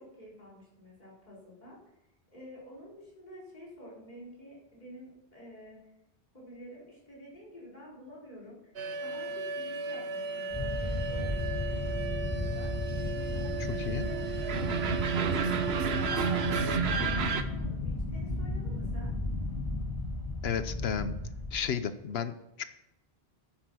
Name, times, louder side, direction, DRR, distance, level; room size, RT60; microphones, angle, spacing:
voice 1, 0.0-1.8 2.3-5.8 6.3-12.7 13.0-16.3 16.7-19.1, equal, 45° left, -6 dB, 4.6 m, -49 dB
sound 1, 8.8-17.4, right 5 dB, 70° right, 1.1 m, -32 dB
sound 2, 10.5-21.6, left 2 dB, 20° left, 3.0 m, -34 dB
voice 2, 20.4-21.1 21.5-22.6, left 7 dB, 75° left, 12 dB, 1.0 m, -33 dB
10.5 x 9.8 x 6.2 m, 0.86 s
omnidirectional pair, 1.1 m